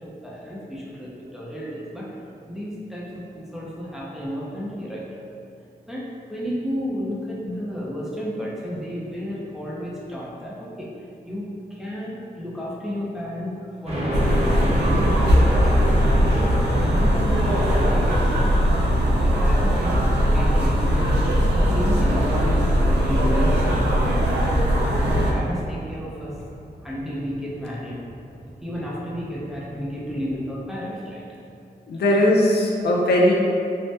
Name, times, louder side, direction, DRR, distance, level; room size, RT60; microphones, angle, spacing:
voice 1, 0.0-2.1 2.5-3.0 3.3-5.1 5.9-6.0 6.3-10.9 11.2-15.6 16.2-16.5 16.9-18.8 19.2-21.1 21.6-23.9 24.4-26.4 26.8-28.0 28.6-31.2, equal, 5° right, -6 dB, 0.5 m, -32 dB
sound 1, 13.9-30.5, equal, 40° right, 0.8 m, -32 dB
sound 2, 14.1-25.3, equal, 90° right, 0.5 m, -20 dB
voice 2, 31.9-33.3, left 1 dB, 75° left, -2 dB, 0.5 m, -18 dB
2.8 x 2.1 x 3.2 m, 2.5 s
cardioid pair, 70°, 17 cm